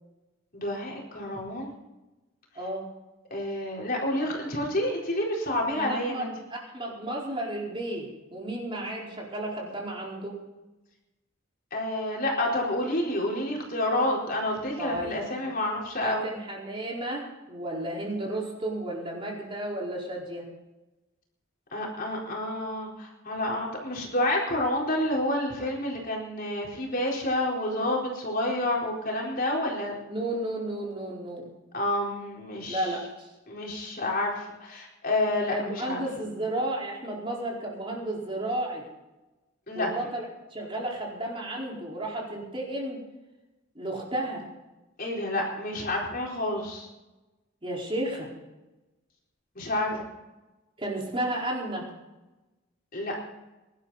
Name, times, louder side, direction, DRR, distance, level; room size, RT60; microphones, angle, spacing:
voice 1, 0.5-1.8 3.3-6.3 11.7-16.3 21.7-29.9 31.7-33.0 33.5-36.0 39.7-39.9 45.0-46.9 49.6-50.1 52.9-53.2, left 1 dB, 45° left, -2 dB, 4.3 m, -29 dB
voice 2, 2.5-2.9 5.8-10.4 14.8-15.2 16.0-20.5 30.1-31.5 32.7-33.3 35.5-38.9 39.7-40.2 40.5-43.0 43.7-44.5 47.6-48.3 50.8-51.9, right 1 dB, 25° right, -3 dB, 4.6 m, -33 dB
23.0 x 12.0 x 4.2 m, 1.0 s
head